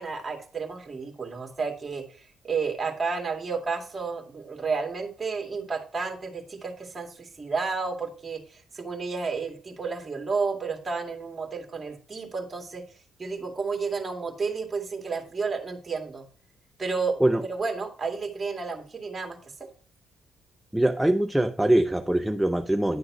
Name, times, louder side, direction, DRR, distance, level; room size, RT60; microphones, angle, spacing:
voice 1, 0.0-2.0 2.4-12.8 13.2-16.2 16.8-17.2 17.5-19.4, right 4 dB, 30° right, 2.1 m, -31 dB
voice 2, 20.7-23.0, right 1 dB, 5° right, 0.5 m, -23 dB
10.5 x 3.8 x 6.0 m
cardioid pair, 90°, 0 cm